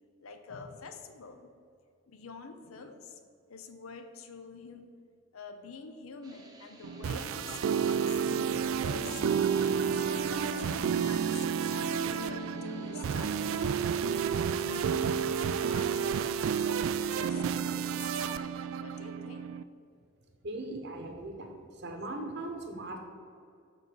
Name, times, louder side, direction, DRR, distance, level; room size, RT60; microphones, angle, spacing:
voice 1, 0.2-1.5 2.1-3.2 3.5-4.9 5.3-13.7 14.4-16.3 16.6-19.5, left 4 dB, 75° left, 7 dB, 0.7 m, -47 dB
sound 1, 6.2-17.6, right 3 dB, 20° right, 0.8 m, -54 dB
sound 2, 6.8-19.6, right 7 dB, 70° right, 0.3 m, -30 dB
sound 3, 8.9-14.1, left 2 dB, 15° left, 1.2 m, -45 dB
voice 2, 20.4-23.0, right 2 dB, 50° right, 4 dB, 0.9 m, -39 dB
7.0 x 4.0 x 6.1 m, 2.4 s
head